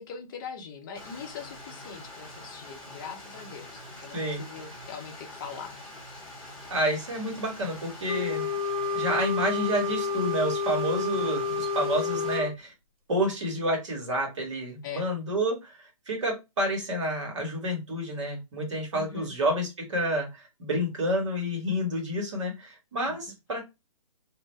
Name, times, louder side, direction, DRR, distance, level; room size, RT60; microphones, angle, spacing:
voice 1, 0.0-5.7 11.0-11.3 14.8-15.1 18.9-19.3 23.1-23.2, left 6 dB, 35° left, 0.7 m, -42 dB
Stream, 0.9-12.4, left 1 dB, 5° left, 1.0 m, -45 dB
voice 2, 6.7-8.5 8.9-12.7 13.1-23.6, equal, 55° right, 1.6 m, -29 dB
Wind instrument woodwind instrument, 8.0-12.5, left 4 dB, 85° right, 1.3 m, -29 dB
2.7 x 2.1 x 3.1 m
figure-of-eight pair, 135°, 19 cm